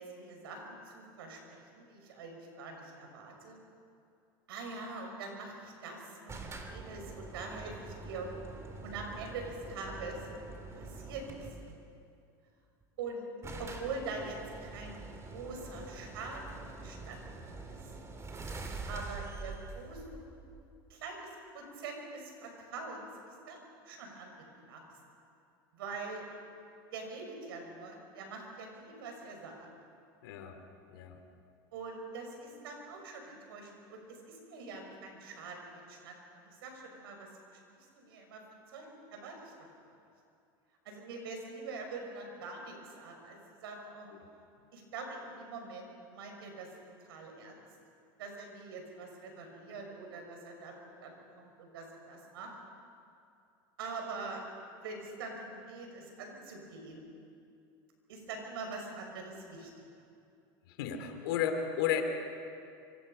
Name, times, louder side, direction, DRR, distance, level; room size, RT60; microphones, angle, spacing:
voice 1, 0.0-3.6 4.5-8.4 8.8-10.2 10.7-11.8 13.0-13.3 13.6-17.2 17.6-17.8 18.9-20.4 20.9-24.3 24.7-24.8 25.7-26.3 26.9-29.7 31.7-36.2 36.6-37.6 37.9-39.5 39.9-40.0 40.9-43.4 43.6-44.1 44.7-46.7 47.0-47.6 48.2-52.5 53.8-54.4 54.8-57.1 58.1-59.7, right 3 dB, 85° right, 2 dB, 5.8 m, -44 dB
sound 1, 6.3-11.8 12.8-12.9 13.1-13.2 13.4-20.9, right 3 dB, 25° right, 2.6 m, -45 dB
voice 2, 30.2-30.6 30.9-31.2 43.8-43.9 60.7-62.0, left 9 dB, 80° left, 6 dB, 2.7 m, -33 dB
25.5 x 25.0 x 5.5 m, 2.5 s
supercardioid pair, 110°, 12 cm